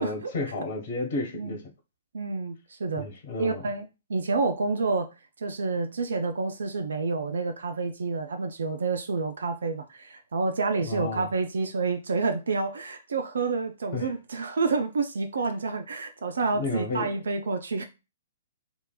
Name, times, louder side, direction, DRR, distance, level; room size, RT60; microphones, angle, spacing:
voice 1, 0.0-1.6 3.0-3.6 10.8-11.3 13.9-14.1 16.5-17.1, left 3 dB, 45° left, 1.3 m, -32 dB
voice 2, 2.1-3.1 3.4-17.8, right 4 dB, 60° right, 0.5 m, -29 dB
3.3 x 2.8 x 2.3 m
figure-of-eight pair, 115°, 0 cm